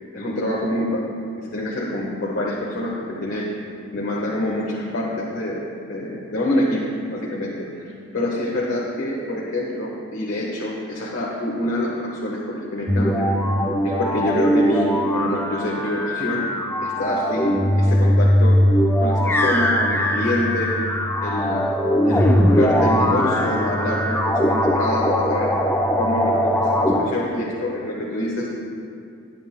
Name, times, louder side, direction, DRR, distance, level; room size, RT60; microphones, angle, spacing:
voice 1, 0.1-1.1 1.4-2.9 3.2-3.5 3.9-5.6 5.9-7.5 8.1-13.6 13.8-16.5 16.8-18.6 19.0-20.7 21.2-21.7 22.0-25.5 26.0-28.5, left 1 dB, 70° left, -4 dB, 1.3 m, -26 dB
sound 1, 12.9-27.0, equal, 10° left, 0.7 m, -20 dB
18.0 x 9.1 x 2.2 m, 2.4 s
head